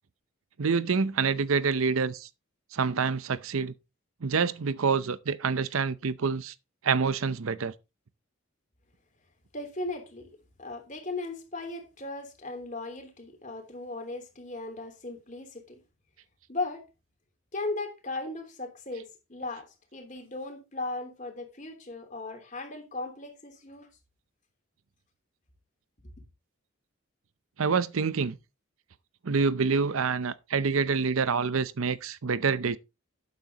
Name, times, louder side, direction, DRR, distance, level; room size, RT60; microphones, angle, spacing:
voice 1, 0.6-2.3 2.7-3.7 4.2-6.5 6.8-7.7 27.6-28.4 29.2-32.8, right 5 dB, 75° right, 0.6 m, -27 dB
voice 2, 9.5-10.3 10.6-15.8 16.5-16.8 17.5-23.9, left 2 dB, 35° left, 3.2 m, -37 dB
12.0 x 9.4 x 2.9 m
head